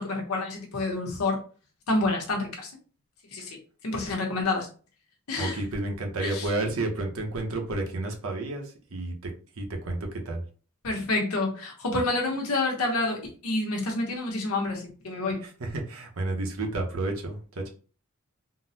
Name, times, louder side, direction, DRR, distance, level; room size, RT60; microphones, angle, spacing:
voice 1, 0.0-1.4 1.9-2.7 3.3-3.6 3.8-4.7 5.3-5.6 6.2-6.5 10.8-15.4, left 2 dB, 85° left, 1 dB, 1.0 m, -28 dB
voice 2, 5.4-9.3 9.6-10.4 15.6-17.7, right 2 dB, 70° right, 3 dB, 0.7 m, -31 dB
3.7 x 2.1 x 2.7 m, 0.38 s
head